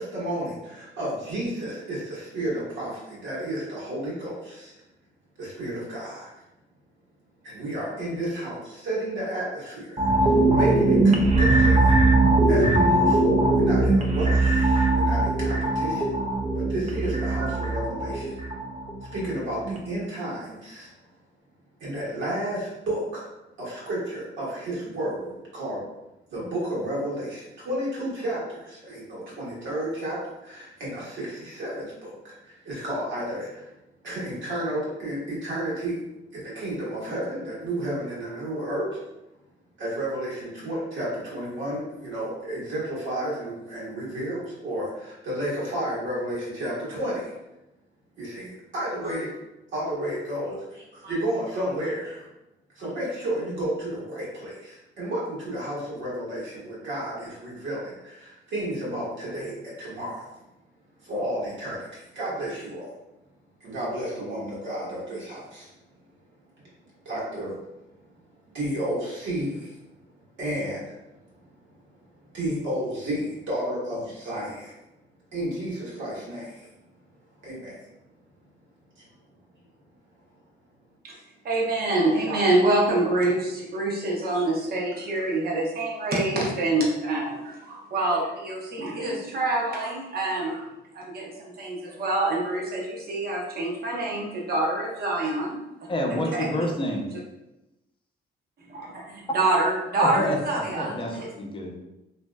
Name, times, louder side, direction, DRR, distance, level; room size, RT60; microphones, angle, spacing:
voice 1, 0.0-4.7 5.4-6.3 7.4-11.9 12.5-16.1 16.5-18.4 19.0-20.9 21.8-23.2 23.6-25.8 26.3-33.7 34.0-36.0 36.3-39.0 39.8-47.4 48.2-49.3 49.7-52.3 52.7-60.3 61.0-62.9 63.6-65.7 67.0-67.6 68.5-69.8 70.3-71.0 71.7-71.8 72.3-74.8 75.3-76.7 77.4-77.9 78.9-79.0, right 1 dB, 70° right, -6 dB, 1.4 m, -32 dB
sound 1, 10.0-19.3 19.6-19.8, right 2 dB, 35° right, 0.5 m, -21 dB
voice 2, 81.4-90.6 90.9-95.6 96.3-96.5 98.7-100.9, right 2 dB, 50° right, -2 dB, 0.8 m, -26 dB
voice 3, 95.9-97.1 100.0-101.7, left 1 dB, 25° left, 1 dB, 0.6 m, -28 dB
2.9 x 2.7 x 2.2 m, 0.94 s
cardioid pair, 90°, 20 cm